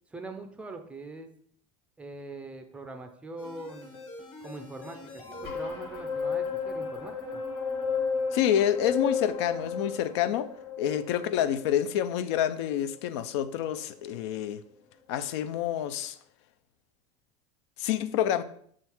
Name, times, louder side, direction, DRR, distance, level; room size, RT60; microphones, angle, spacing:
voice 1, 0.1-1.3 2.0-3.9 4.4-7.4, right 2 dB, 10° right, 0.4 m, -42 dB
sound 1, 3.4-13.7 14.1-14.2, left 5 dB, 35° left, 1.5 m, -34 dB
voice 2, 8.3-10.5 10.8-14.6 15.1-16.2 17.8-18.4, left 10 dB, 75° left, 0.5 m, -28 dB
6.2 x 3.7 x 4.4 m
cardioid pair, 165°, 15 cm